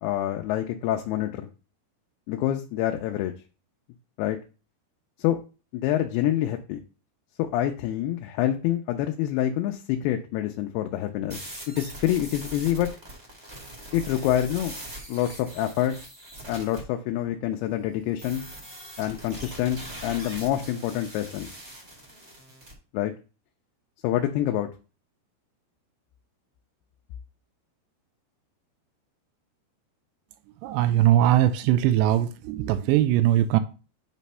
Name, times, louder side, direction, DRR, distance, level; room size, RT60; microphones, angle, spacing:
voice 1, 0.0-1.5 2.3-3.3 4.2-4.4 5.2-5.4 5.7-6.8 7.4-11.4 11.7-12.9 13.9-14.7 15.1-16.0 16.5-18.5 19.0-21.5 22.9-23.1 24.0-24.7, left 12 dB, 80° left, 2.4 m, -26 dB
sound 1, 11.3-16.8 18.2-22.7, right 1 dB, 35° right, 1.0 m, -41 dB
voice 2, 30.6-33.6, right 12 dB, 85° right, 2.8 m, -21 dB
9.2 x 3.2 x 5.4 m
omnidirectional pair, 5.0 m